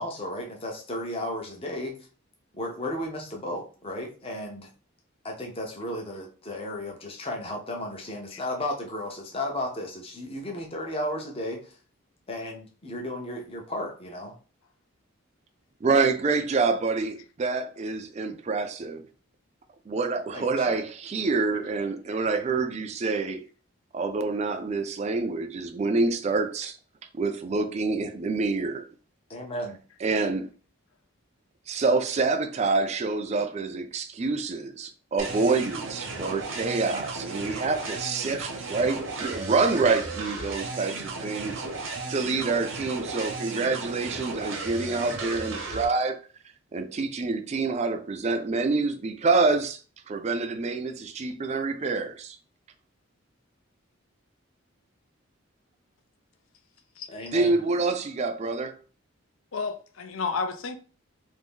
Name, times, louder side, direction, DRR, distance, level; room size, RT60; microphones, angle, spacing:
voice 1, 0.0-2.0 2.5-4.7 5.2-11.8 12.3-14.4 20.3-20.8 29.3-29.8 57.1-57.6, left 1 dB, 25° left, 0.6 m, -34 dB
voice 2, 15.8-19.1 19.9-23.5 23.9-26.8 27.2-28.9 30.0-30.5 31.7-41.7 42.1-46.2 46.7-49.8 50.1-52.4 57.3-58.8, right 3 dB, 30° right, 0.3 m, -27 dB
sound 1, 35.2-45.8, right 3 dB, 60° right, 0.7 m, -35 dB
voice 3, 59.5-60.8, left 4 dB, 70° left, 0.5 m, -31 dB
2.6 x 2.6 x 3.6 m
head